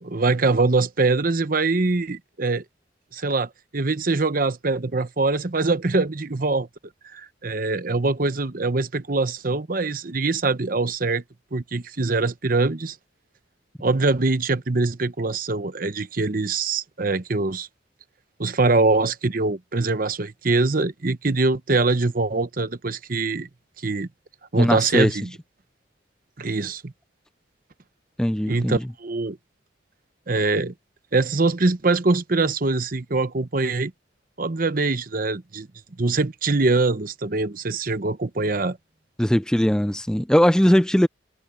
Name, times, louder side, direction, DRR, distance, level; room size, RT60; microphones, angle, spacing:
voice 1, 0.0-2.6 3.1-6.7 7.1-11.2 11.5-13.0 13.8-17.7 18.4-23.5 23.8-24.1 24.5-25.3 26.4-26.9 28.5-29.4 30.3-30.7 31.1-33.9 34.4-35.7 36.0-38.8, right 3 dB, 45° right, 0.9 m, -23 dB
voice 2, 24.6-25.1 28.2-28.8 39.2-41.1, equal, 5° left, 0.4 m, -19 dB
head